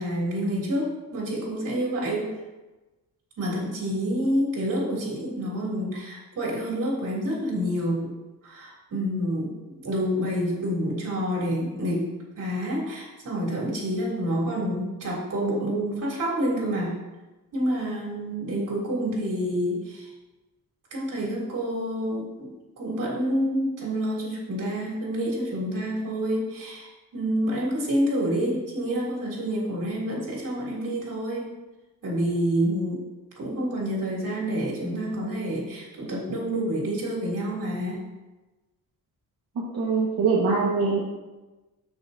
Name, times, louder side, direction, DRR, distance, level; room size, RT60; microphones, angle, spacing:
voice 1, 0.0-2.3 3.4-8.1 8.4-9.5 9.8-16.9 17.5-20.1 20.9-22.5 22.8-31.5 32.0-33.0 33.4-38.1, equal, 60° right, -5 dB, 3.3 m, -28 dB
voice 2, 39.7-41.0, right 4 dB, 80° right, -6 dB, 1.7 m, -23 dB
13.5 x 6.1 x 2.8 m, 1.1 s
wide cardioid pair, 160°, 36 cm